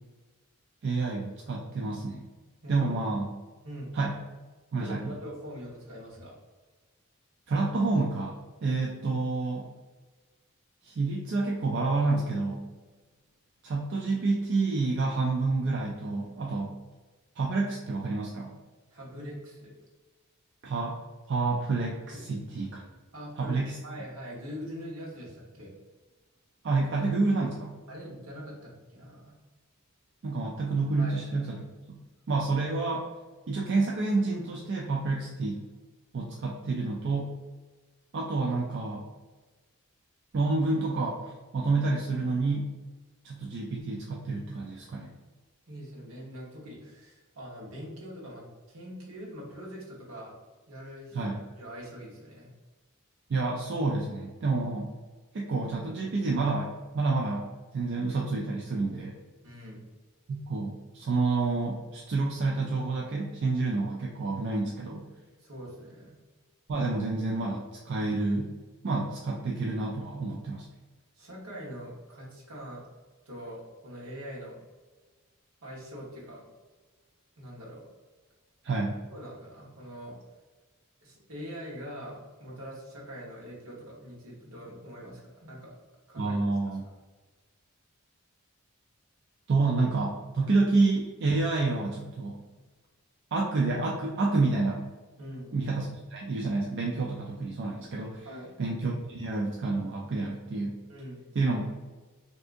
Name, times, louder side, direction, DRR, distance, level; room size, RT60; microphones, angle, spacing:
voice 1, 0.8-2.2 2.7-3.3 3.9-4.2 4.7-5.1 7.5-9.7 10.8-12.7 13.6-16.7 17.4-18.5 20.6-21.0 21.3-22.8 23.4-23.8 26.6-27.8 30.2-32.0 32.3-33.0 33.5-35.6 36.1-37.4 38.1-39.1 40.3-42.7 43.2-45.1 51.1-51.4 53.3-54.9 55.3-57.5 57.7-59.2 60.3-65.1 66.7-68.5 68.8-70.7 78.6-79.0 86.2-86.8 89.5-92.4 93.3-94.8 95.5-98.3 98.6-100.8 101.4-101.6, right 3 dB, 55° right, -2 dB, 0.4 m, -29 dB
voice 2, 2.6-2.9 3.6-3.9 4.7-6.3 18.9-19.7 22.1-22.4 23.1-25.7 27.9-29.3 31.0-31.2 45.7-50.3 50.7-51.2 51.6-52.5 59.4-59.8 65.4-66.2 71.2-72.9 73.2-74.6 75.6-76.5 77.4-77.8 78.7-80.2 81.0-85.8 86.1-86.5 95.2-95.5 98.2-98.5 100.9-101.2, equal, 80° right, -4 dB, 1.1 m, -43 dB
3.5 x 2.7 x 2.5 m, 1.3 s
head